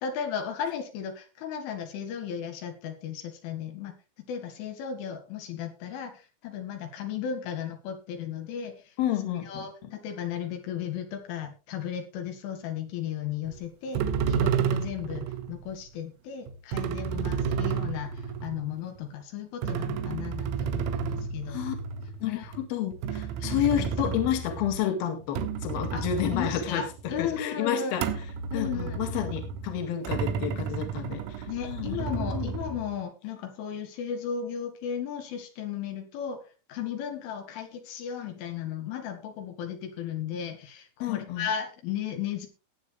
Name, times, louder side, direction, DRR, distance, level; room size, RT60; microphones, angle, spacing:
voice 1, 0.0-3.9 4.3-8.9 9.5-14.0 14.3-21.6 22.2-22.5 23.4-24.2 25.9-26.1 26.3-28.0 28.5-29.0 31.5-42.5, left 8 dB, 75° left, 5 dB, 4.1 m, -35 dB
voice 2, 9.0-9.7 21.5-21.7 22.2-28.1 28.5-32.5 41.0-41.5, left 10 dB, 55° left, 5 dB, 3.4 m, -30 dB
sound 1, 13.5-13.6 13.9-15.6 16.5-19.0 19.6-24.9 25.2-27.4 28.0-33.0, right 6 dB, 80° right, 3.6 m, -31 dB
19.0 x 8.2 x 3.3 m, 0.31 s
omnidirectional pair, 5.9 m